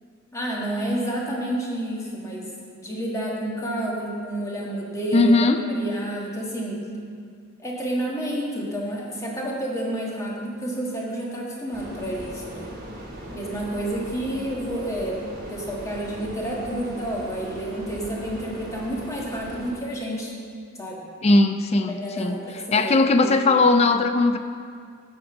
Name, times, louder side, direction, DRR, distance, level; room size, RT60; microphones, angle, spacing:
voice 1, 0.3-2.5 2.8-6.8 7.6-12.7 13.3-15.2 15.5-20.3 20.7-21.1 21.9-23.0 23.2-23.4, right 1 dB, 15° left, -3 dB, 1.4 m, -30 dB
voice 2, 5.1-5.6 21.2-22.4 22.7-24.4, left 3 dB, 30° left, 9 dB, 0.3 m, -19 dB
sound 1, 11.7-19.7, equal, 45° right, 1.1 m, -39 dB
8.9 x 5.1 x 7.0 m, 2.2 s
head